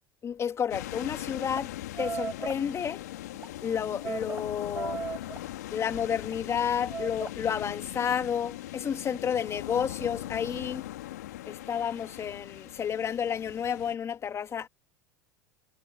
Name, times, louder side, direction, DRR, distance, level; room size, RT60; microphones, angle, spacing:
voice 1, 0.2-1.7 2.0-3.0 3.6-5.1 5.7-10.9 11.5-14.7, left 8 dB, 30° left, 2.7 m, -31 dB
sound 1, 0.7-13.9, left 15 dB, 80° left, 2.7 m, -40 dB
sound 2, 1.6-1.7 2.0-2.6 3.3-3.5 4.0-4.4 4.7-5.4 6.1-6.4 6.9-7.3, right 5 dB, 20° right, 1.5 m, -35 dB
hypercardioid pair, 95°, 9 cm